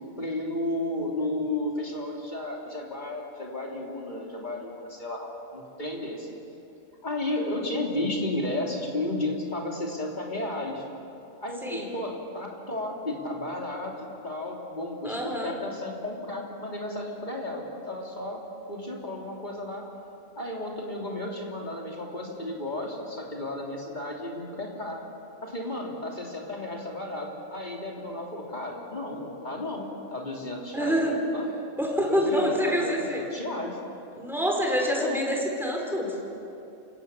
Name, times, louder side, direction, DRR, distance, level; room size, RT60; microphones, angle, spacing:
voice 1, 0.2-6.3 7.0-10.8 11.4-13.9 14.2-18.4 18.7-19.8 20.3-25.0 25.4-31.5 32.1-33.8 35.0-35.3, left 1 dB, 30° left, -1 dB, 3.3 m, -33 dB
voice 2, 15.0-15.5 30.7-31.2 31.8-33.2 34.2-36.1, equal, ahead, 0 dB, 4.0 m, -26 dB
28.5 x 17.0 x 7.2 m, 2.8 s
omnidirectional pair, 1.5 m